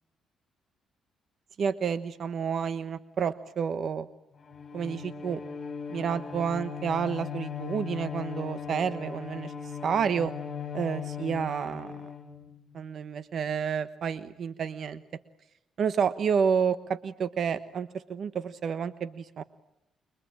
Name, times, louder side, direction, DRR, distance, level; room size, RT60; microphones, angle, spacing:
voice 1, 1.6-4.1 4.7-5.4 5.9-9.5 9.8-10.3 10.7-11.9 12.7-15.0 15.8-19.4, right 7 dB, 50° right, 12 dB, 1.1 m, -30 dB
Bowed string instrument, 4.4-12.8, left 7 dB, 35° left, 7.5 m, -39 dB
29.0 x 23.5 x 8.8 m, 0.87 s
cardioid pair, 115°, 0 cm